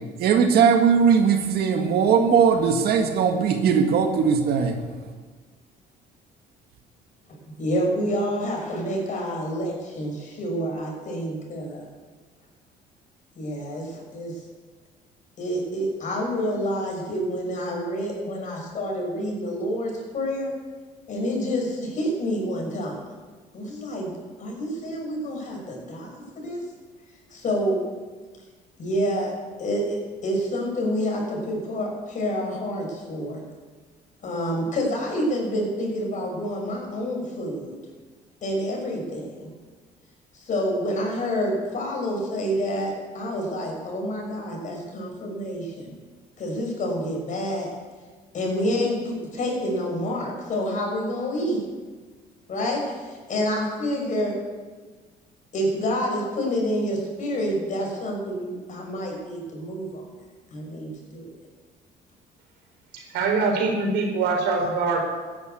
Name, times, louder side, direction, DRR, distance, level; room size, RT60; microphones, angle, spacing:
voice 1, 0.2-4.8, right 6 dB, 70° right, 5 dB, 1.9 m, -19 dB
voice 2, 7.6-11.8 13.4-14.4 15.4-20.5 21.1-23.0 23.5-24.1 24.4-26.6 27.3-27.8 28.8-29.3 29.6-33.4 34.2-37.8 38.4-39.4 40.3-45.9 46.4-47.7 48.3-51.6 52.5-54.4 55.5-60.1 60.5-61.3, equal, 50° left, 0 dB, 6.2 m, -28 dB
voice 3, 62.9-65.0, right 4 dB, 85° right, 2 dB, 4.5 m, -23 dB
13.5 x 11.0 x 8.3 m, 1.4 s
cardioid pair, 110°, 17 cm